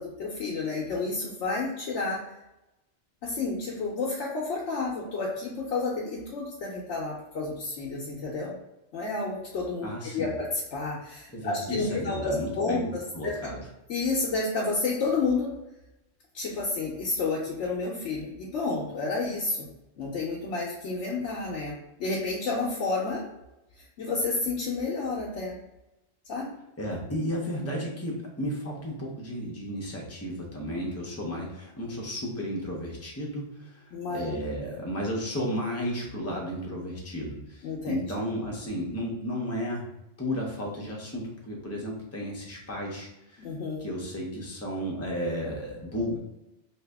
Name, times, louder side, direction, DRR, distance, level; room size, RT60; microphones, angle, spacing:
voice 1, 0.0-2.2 3.2-8.6 8.9-13.5 13.9-15.5 16.3-19.7 20.0-23.2 23.8-25.6 26.3-26.5 33.9-34.4 37.6-38.0 43.4-43.9, left 3 dB, 80° left, -4 dB, 1.0 m, -30 dB
voice 2, 9.8-10.3 11.3-12.8 13.1-13.6 26.8-39.8 40.2-43.4 43.8-46.2, equal, 15° left, -2 dB, 0.6 m, -33 dB
2.8 x 2.6 x 3.3 m, 0.93 s
omnidirectional pair, 1.2 m